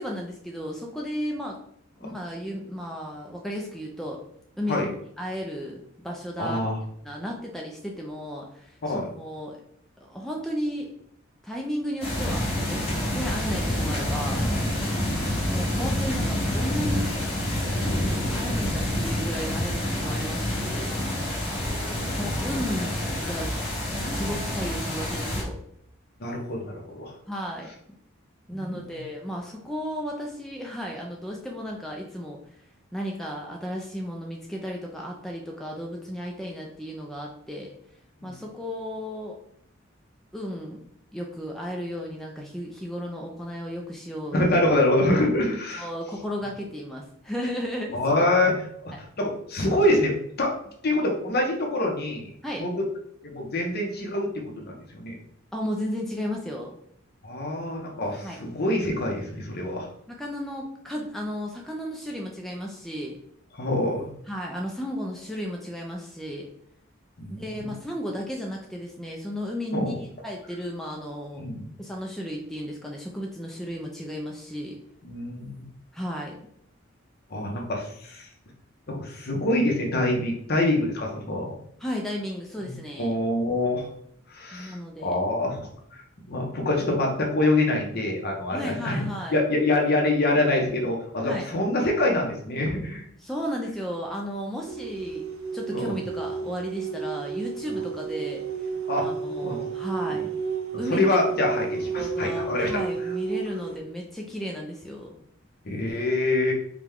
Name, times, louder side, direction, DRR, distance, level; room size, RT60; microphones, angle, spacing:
voice 1, 0.0-1.6 2.0-4.2 4.6-6.7 7.0-9.6 10.1-10.9 11.4-14.4 15.4-17.2 18.3-21.0 22.2-23.0 23.2-23.5 24.1-25.6 27.3-27.7 28.5-32.4 32.9-37.8 38.2-39.4 40.3-40.8 41.1-44.4 45.8-48.0 48.9-49.0 52.4-52.6 55.5-56.7 58.2-58.4 60.1-63.2 64.3-66.5 67.4-71.5 71.8-74.8 75.9-76.4 81.8-83.1 84.5-85.2 88.5-89.4 91.2-91.5 93.2-95.3 95.5-98.7 99.0-100.3 100.8-101.1 102.0-105.1, equal, ahead, -1 dB, 0.4 m, -34 dB
voice 2, 6.4-6.8 8.9-9.1 14.9-15.3 21.5-22.2 26.2-27.1 28.5-28.8 38.2-38.3 44.3-45.9 47.9-50.1 50.4-50.5 50.8-52.3 52.6-52.8 53.2-55.2 57.2-59.9 63.6-64.1 67.2-67.7 69.7-70.0 71.4-71.6 75.0-75.6 77.3-78.3 78.9-81.5 82.6-83.9 84.3-89.1 89.3-93.0 95.7-95.9 98.9-99.0 99.4-99.6 100.1-100.2 100.9-102.7 105.6-106.5, left 1 dB, 50° left, 0 dB, 0.9 m, -26 dB
sound 1, 12.0-25.4, left 1 dB, 30° left, 1.3 m, -27 dB
sound 2, 94.7-103.8, right 5 dB, 80° right, 0.6 m, -32 dB
4.8 x 2.3 x 3.6 m, 0.68 s
head